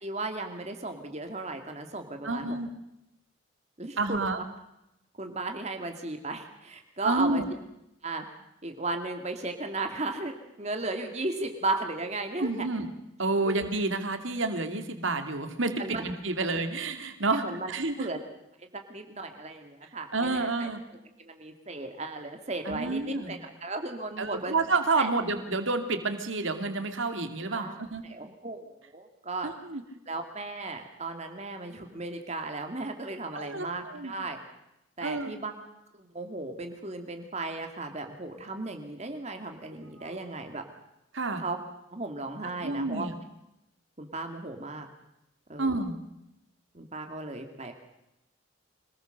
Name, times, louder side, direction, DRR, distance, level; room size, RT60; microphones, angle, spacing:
voice 1, 0.0-2.6 3.8-4.3 5.2-7.4 8.0-8.3 8.6-12.5 13.5-13.6 15.8-16.0 17.3-17.7 18.0-18.2 18.6-20.7 21.2-24.6 25.0-25.1 27.5-29.5 30.1-34.4 35.0-35.5 35.9-40.6 41.4-41.6 41.9-43.1 44.0-44.9 45.5-45.7 46.7-47.7, right 2 dB, 35° right, 5 dB, 2.1 m, -35 dB
voice 2, 2.2-2.7 4.0-4.4 7.0-7.5 12.4-12.9 13.2-18.1 20.1-20.8 22.7-23.4 24.2-28.0 29.4-29.8 33.3-34.1 35.0-35.3 40.0-40.2 41.1-41.4 42.6-43.1 45.6-45.9, right 3 dB, 75° right, 7 dB, 2.4 m, -29 dB
26.0 x 20.0 x 6.6 m, 0.85 s
head